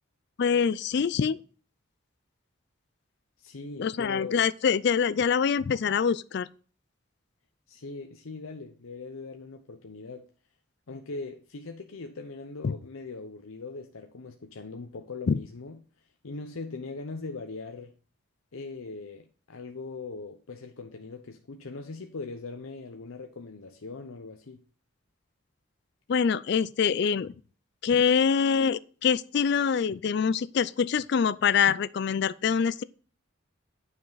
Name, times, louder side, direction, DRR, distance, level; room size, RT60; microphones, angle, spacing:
voice 1, 0.4-1.4 3.8-6.5 15.3-15.4 26.1-27.3 27.8-32.8, left 6 dB, 55° left, 0.3 m, -25 dB
voice 2, 3.4-4.4 7.7-10.3 10.9-18.0 18.5-24.6, left 3 dB, 85° left, 0.8 m, -40 dB
9.5 x 5.4 x 3.9 m
head